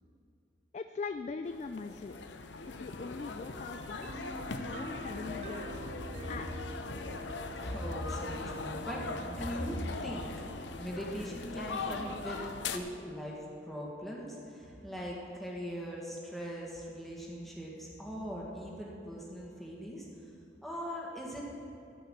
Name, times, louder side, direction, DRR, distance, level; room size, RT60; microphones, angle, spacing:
voice 1, 0.7-2.2 2.6-4.3 4.6-5.8 6.3-6.7, left 4 dB, 40° left, 8 dB, 0.3 m, -41 dB
sound 1, 1.5-12.8, left 3 dB, 85° left, 0.7 m, -40 dB
sound 2, 4.0-11.7, right 2 dB, 35° right, 0.4 m, -49 dB
voice 2, 7.6-12.4 12.7-20.1 20.6-21.4, equal, ahead, -4 dB, 1.6 m, -40 dB
14.0 x 5.5 x 7.5 m, 2.7 s
head